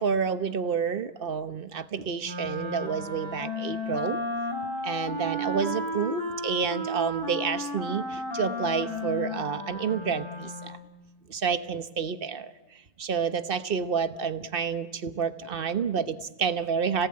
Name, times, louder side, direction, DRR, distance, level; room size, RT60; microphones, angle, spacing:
voice 1, 0.0-4.2 4.8-10.8 11.3-12.5 13.0-17.1, right 6 dB, 40° right, 11 dB, 1.1 m, -29 dB
Wind instrument woodwind instrument, 2.2-10.9, left 1 dB, 20° left, 3.4 m, -33 dB
30.0 x 18.0 x 8.7 m, 1.1 s
omnidirectional pair, 1.5 m